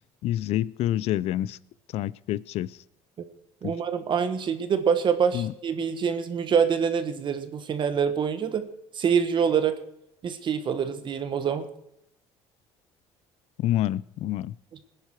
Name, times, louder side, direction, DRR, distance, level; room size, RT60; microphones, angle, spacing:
voice 1, 0.2-1.6 1.9-2.7 3.6-3.7 5.3-5.5 13.6-14.5, left 13 dB, 65° left, 22 dB, 0.5 m, -27 dB
voice 2, 3.6-8.6 8.9-9.8 10.2-11.7, right 7 dB, 45° right, 9 dB, 1.4 m, -25 dB
20.0 x 10.5 x 4.6 m, 0.80 s
cardioid pair, 100°, 11 cm